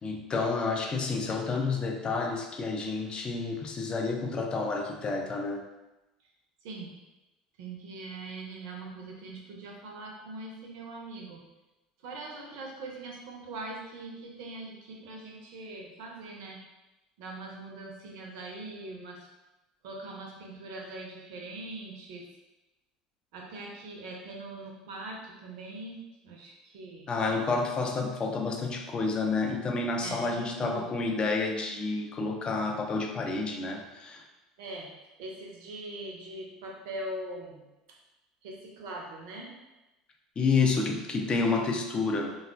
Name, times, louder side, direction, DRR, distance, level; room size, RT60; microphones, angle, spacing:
voice 1, 0.0-5.7 27.1-34.2 40.4-42.3, left 4 dB, 25° left, 2 dB, 0.4 m, -29 dB
voice 2, 6.6-7.0 7.6-11.4 12.0-16.6 17.2-19.3 19.8-22.3 23.3-27.4 30.0-30.9 34.6-34.9 35.2-37.7 38.4-39.5 41.2-41.4, right 2 dB, 55° right, 0 dB, 0.6 m, -42 dB
3.5 x 2.3 x 2.2 m, 1.0 s
figure-of-eight pair, 70°, 4 cm